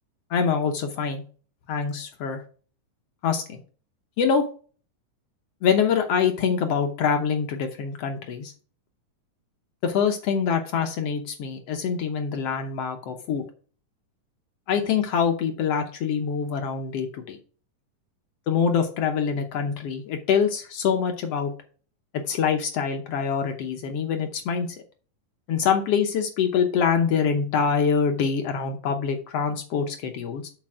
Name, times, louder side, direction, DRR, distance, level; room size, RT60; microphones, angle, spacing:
voice 1, 0.3-1.2 1.7-2.4 3.2-3.6 4.2-4.4 5.6-8.5 9.8-13.4 14.7-17.4 18.5-21.5 22.3-24.7 25.5-30.5, left 6 dB, 75° left, 4 dB, 1.4 m, -25 dB
7.6 x 5.2 x 4.8 m, 0.40 s
omnidirectional pair, 3.9 m